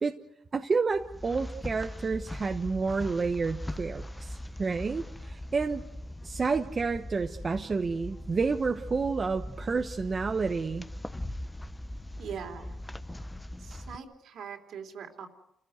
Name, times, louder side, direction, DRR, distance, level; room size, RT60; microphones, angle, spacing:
voice 1, 0.5-5.8 6.2-10.9, right 4 dB, 35° right, 5 dB, 1.1 m, -30 dB
sound 1, 0.9-14.0, left 1 dB, 10° left, 0.8 m, -40 dB
voice 2, 12.2-12.8 13.6-15.3, right 7 dB, 70° right, 4 dB, 3.2 m, -42 dB
28.5 x 15.0 x 8.0 m, 0.84 s
cardioid pair, 90°, 0 cm